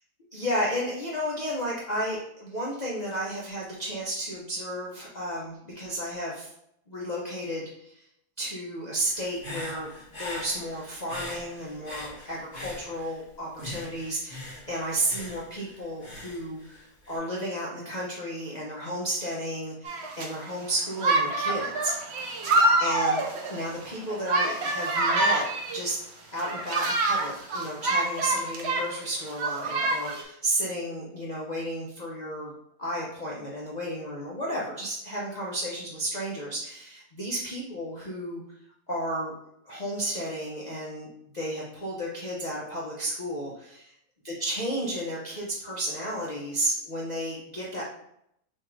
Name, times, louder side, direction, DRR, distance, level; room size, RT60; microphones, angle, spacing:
voice 1, 0.3-6.5 6.9-8.0 8.4-22.0 22.8-23.2 23.5-26.0 26.3-32.5 32.8-38.4 38.9-39.3 39.6-41.1 41.3-43.9 44.2-47.8, right 1 dB, 65° left, -5 dB, 0.4 m, -33 dB
Human voice / Breathing, 9.1-13.2 13.6-17.2, left 1 dB, 30° left, 1.3 m, -41 dB
sound 1, 19.8-20.3 21.0-25.9 26.4-29.0 29.3-30.2, right 2 dB, 85° right, 0.5 m, -26 dB
6.5 x 2.5 x 3.1 m, 0.75 s
omnidirectional pair, 2.0 m